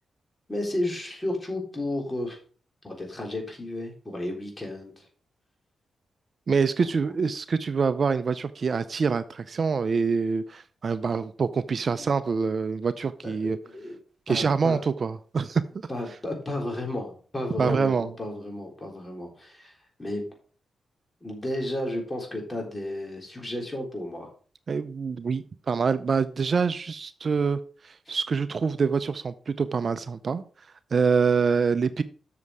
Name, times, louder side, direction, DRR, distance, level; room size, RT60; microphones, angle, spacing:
voice 1, 0.5-2.4 2.8-5.1 12.0-12.1 13.2-14.0 14.3-14.8 15.9-20.2 21.2-24.3 28.1-28.2, left 1 dB, 20° left, 1 dB, 3.8 m, -33 dB
voice 2, 6.5-13.6 14.3-15.6 17.6-18.1 24.7-30.4 30.9-32.0, right 5 dB, 55° right, 13 dB, 0.5 m, -25 dB
7.2 x 6.6 x 4.8 m, 0.41 s
cardioid pair, 60°, 0 cm